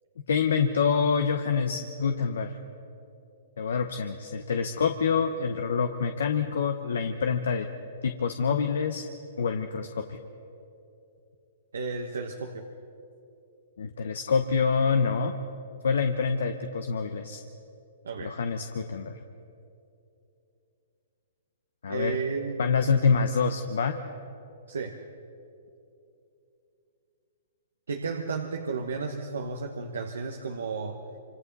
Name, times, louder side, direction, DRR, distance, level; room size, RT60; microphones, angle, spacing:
voice 1, 0.3-2.6 3.6-7.7 8.0-9.0 9.4-10.2 13.8-15.3 15.8-17.4 18.2-19.2 21.8-22.2 22.6-24.0, left 5 dB, 75° left, 6 dB, 1.0 m, -26 dB
voice 2, 11.7-12.6 18.0-18.4 21.9-22.7 24.7-25.0 27.9-31.0, right 4 dB, 85° right, 3 dB, 1.3 m, -33 dB
26.0 x 26.0 x 4.1 m, 2.8 s
hypercardioid pair, 135°, 0 cm